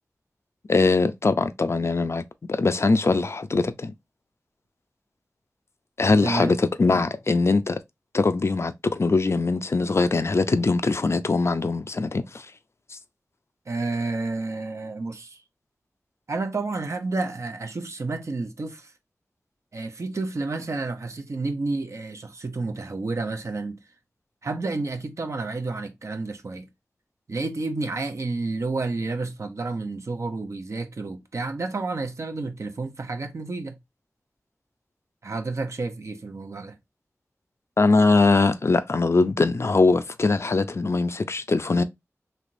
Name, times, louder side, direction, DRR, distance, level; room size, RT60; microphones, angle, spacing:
voice 1, 0.7-2.2 2.5-3.9 6.0-7.8 8.1-12.5 12.9-13.0 37.8-41.8, left 3 dB, 55° left, 0.4 m, -22 dB
voice 2, 6.2-6.6 13.7-15.4 16.3-18.9 19.7-23.8 24.4-26.7 27.3-33.8 35.2-36.8, right 3 dB, 65° right, 0.6 m, -30 dB
3.3 x 2.9 x 2.5 m
wide cardioid pair, 50°, 6 cm